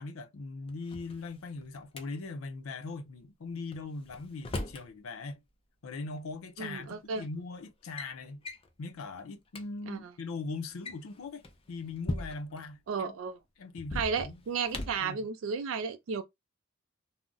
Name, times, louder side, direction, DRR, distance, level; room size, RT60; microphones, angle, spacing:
voice 1, 0.0-5.4 5.8-8.4 8.8-13.1 13.6-14.5 15.0-15.3, left 3 dB, 80° left, 0.5 m, -40 dB
Drawer open or close, 0.7-2.0 3.7-4.9 6.2-6.3 7.1-7.3 7.7-8.1 8.4-8.7 9.2-9.3 9.5-9.6 10.6-12.6 13.8-15.1, left 2 dB, 25° left, 0.4 m, -39 dB
voice 2, 6.6-7.3 9.9-10.0 12.9-13.4 13.9-16.2, right 5 dB, 65° right, 0.3 m, -33 dB
2.4 x 2.0 x 3.7 m
head